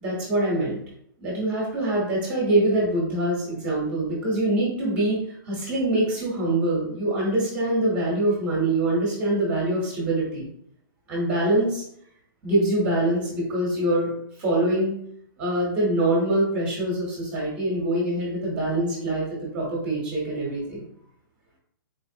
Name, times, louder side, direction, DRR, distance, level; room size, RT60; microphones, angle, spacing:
voice 1, 0.0-0.8 1.2-10.5 11.1-11.8 12.4-14.1 14.4-14.9 15.4-19.3 19.5-20.8, right 1 dB, 15° right, -4 dB, 0.8 m, -24 dB
3.9 x 3.0 x 2.6 m, 0.70 s
hypercardioid pair, 170°, 12 cm